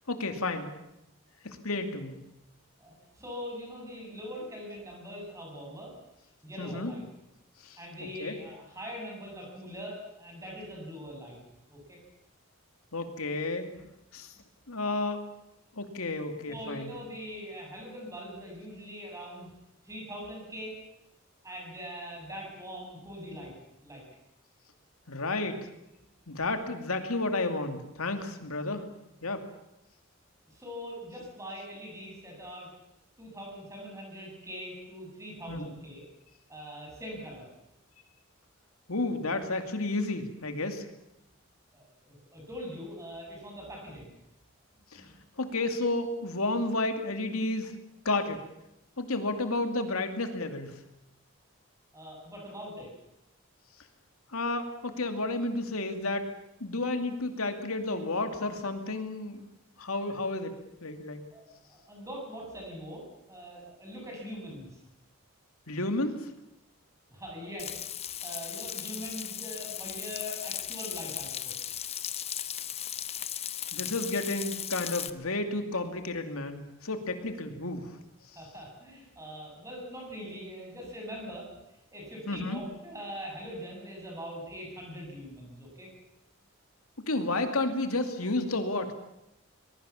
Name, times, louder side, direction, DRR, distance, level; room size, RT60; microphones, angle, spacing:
voice 1, 0.1-0.7 1.4-2.2 6.6-6.9 7.6-7.8 8.2-8.4 12.9-13.7 14.1-14.3 14.7-15.2 15.7-16.9 25.1-25.7 26.3-28.9 29.2-29.4 35.5-35.7 38.9-40.8 44.9-45.1 45.4-47.7 48.0-48.4 49.0-50.7 54.3-56.2 56.6-59.4 59.8-60.5 60.8-61.2 65.7-66.3 73.7-78.0 82.3-82.6 87.1-88.9, left 2 dB, 85° left, 7 dB, 2.7 m, -31 dB
voice 2, 2.8-5.9 6.4-7.0 7.8-11.4 11.7-12.0 16.5-19.5 19.8-20.7 21.4-23.5 23.8-24.0 30.5-32.7 33.2-36.0 36.5-37.5 41.7-44.1 44.9-45.2 51.9-52.9 61.3-64.8 67.1-67.9 68.2-71.5 78.4-81.5 81.9-85.9, equal, 15° right, -1 dB, 7.6 m, -42 dB
Frying (food), 67.6-75.1, left 10 dB, 30° left, 0.8 m, -37 dB
23.0 x 21.5 x 7.2 m, 0.85 s
head